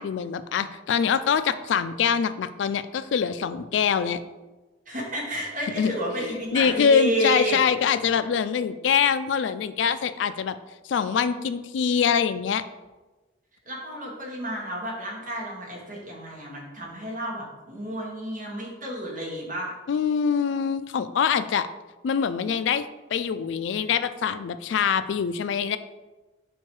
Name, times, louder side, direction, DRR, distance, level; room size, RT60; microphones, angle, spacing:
voice 1, 0.0-4.2 5.8-5.9 6.5-10.6 10.8-12.6 19.9-21.7 22.0-25.8, left 7 dB, 70° left, 12 dB, 0.3 m, -24 dB
voice 2, 4.8-7.6 8.1-8.2 13.6-19.7, right 1 dB, 45° right, -3 dB, 1.6 m, -31 dB
4.7 x 4.5 x 4.5 m, 1.1 s
head